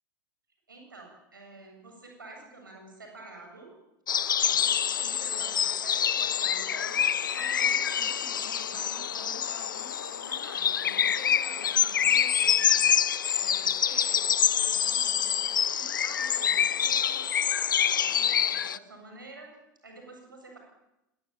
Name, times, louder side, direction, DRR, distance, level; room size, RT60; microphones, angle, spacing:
voice 1, 0.7-3.7 4.4-7.0 7.3-12.9 13.3-15.4 15.7-19.5 19.8-20.6, right 2 dB, 85° right, 1 dB, 7.9 m, -48 dB
sound 1, 4.1-18.8, left 9 dB, 80° left, 0.9 m, -26 dB
25.5 x 21.0 x 8.8 m, 0.90 s
figure-of-eight pair, 80°, 11 cm